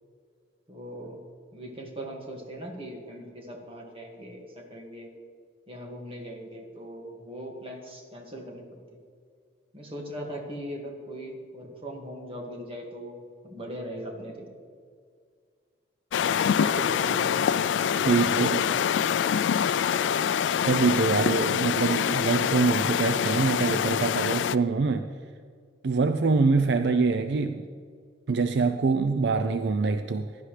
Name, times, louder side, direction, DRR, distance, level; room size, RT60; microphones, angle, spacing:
voice 1, 0.7-1.2 1.5-5.1 5.7-8.8 9.7-14.5 16.5-17.4, equal, 30° right, 0 dB, 2.0 m, -39 dB
sound 1, 16.1-24.6, left 8 dB, 75° left, 0.3 m, -25 dB
voice 2, 18.0-18.7 20.6-25.0 25.8-27.6 28.3-30.3, right 4 dB, 65° right, 9 dB, 0.5 m, -24 dB
16.5 x 11.5 x 3.3 m, 2.1 s
head